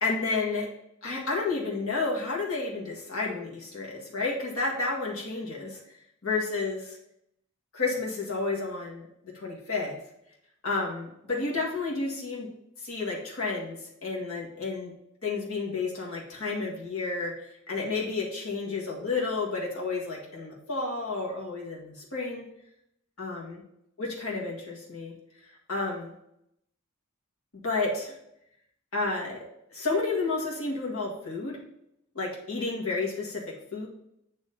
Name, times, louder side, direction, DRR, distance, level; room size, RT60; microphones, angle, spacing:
voice 1, 0.0-0.7 1.0-5.8 6.2-7.0 7.7-9.1 9.3-10.0 10.6-12.5 12.8-14.9 15.2-22.5 23.2-23.6 24.0-25.1 25.7-26.1 27.5-28.1 28.9-29.4 29.7-31.6 32.2-33.4 33.7-33.9, left 3 dB, 70° left, -3 dB, 1.8 m, -31 dB
9.0 x 3.1 x 5.2 m, 0.78 s
head